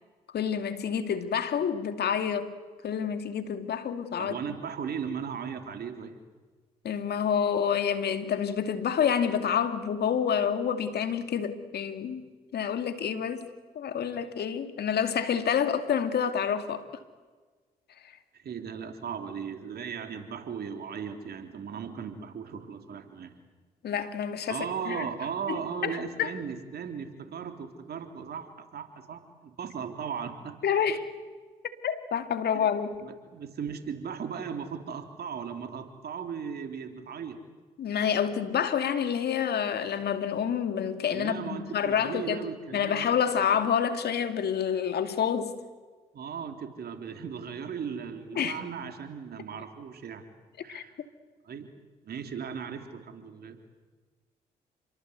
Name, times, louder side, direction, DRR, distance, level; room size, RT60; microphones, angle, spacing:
voice 1, 0.3-2.5 2.8-4.4 6.8-12.3 12.5-13.5 13.8-16.9 23.8-25.1 25.5-26.3 30.6-31.1 31.8-33.0 37.8-42.4 42.7-45.5 48.4-48.6 50.7-51.1, left 8 dB, 70° left, 9 dB, 2.3 m, -28 dB
voice 2, 4.2-6.2 18.3-23.3 24.5-30.6 32.5-32.7 33.0-37.4 41.1-43.0 46.1-50.3 50.6-50.9 51.5-51.7 52.0-53.6, right 7 dB, 65° right, 6 dB, 3.8 m, -37 dB
29.5 x 22.5 x 8.3 m, 1.4 s
supercardioid pair, 50°, 18 cm